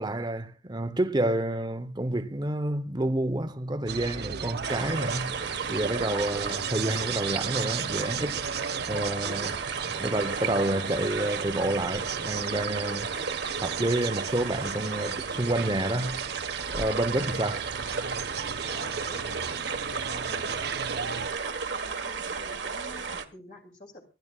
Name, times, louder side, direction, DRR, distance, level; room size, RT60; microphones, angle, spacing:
voice 1, 0.0-5.4 5.7-8.4 8.9-9.6 9.8-13.1 13.6-16.3 16.7-17.6, right 1 dB, 25° right, 0.8 m, -29 dB
sound 1, 3.9-21.3, right 7 dB, 60° right, 0.6 m, -36 dB
sound 2, 4.6-23.2, right 5 dB, 80° right, 1.4 m, -34 dB
voice 2, 9.8-10.1 18.7-24.1, left 1 dB, 45° left, 2.7 m, -49 dB
26.0 x 10.5 x 2.4 m
head